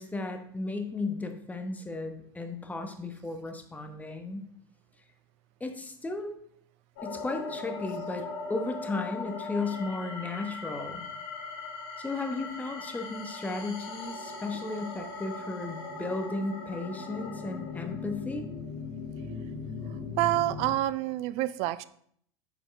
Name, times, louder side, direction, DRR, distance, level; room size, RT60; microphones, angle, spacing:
voice 1, 0.0-4.4 5.6-6.4 7.0-11.0 12.0-18.5, left 3 dB, 10° left, 5 dB, 1.1 m, -35 dB
sound 1, 7.0-20.7, left 4 dB, 65° left, 1.6 m, -39 dB
voice 2, 19.9-21.8, right 15 dB, 55° right, 16 dB, 0.4 m, -28 dB
8.8 x 4.9 x 3.3 m, 0.64 s
hypercardioid pair, 75°, 13 cm